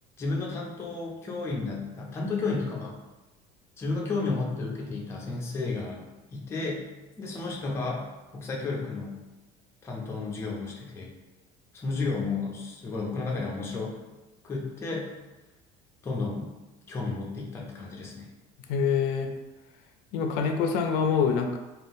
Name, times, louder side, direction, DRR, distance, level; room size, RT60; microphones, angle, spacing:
voice 1, 0.2-2.9 3.8-6.8 7.2-8.0 8.3-9.1 9.8-11.1 11.7-13.9 14.4-15.1 16.0-16.5 16.9-18.3, left 3 dB, 15° left, -2 dB, 0.4 m, -32 dB
voice 2, 18.7-19.3 20.1-21.6, left 6 dB, 75° left, 4 dB, 0.4 m, -25 dB
3.5 x 2.3 x 2.6 m, 1.1 s
cardioid pair, 160°, 17 cm